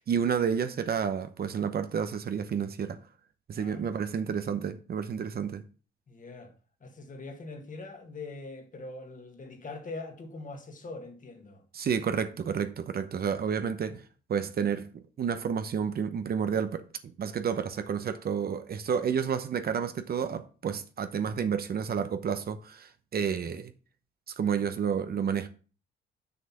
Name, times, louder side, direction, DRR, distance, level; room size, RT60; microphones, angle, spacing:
voice 1, 0.0-3.0 3.5-5.6 11.7-14.0 14.3-23.7 24.4-25.5, right 7 dB, 50° right, 0.9 m, -30 dB
voice 2, 3.6-3.9 6.1-6.5 6.8-11.6, left 3 dB, 40° left, 1.9 m, -42 dB
6.6 x 5.4 x 5.9 m
cardioid pair, 90°, 20 cm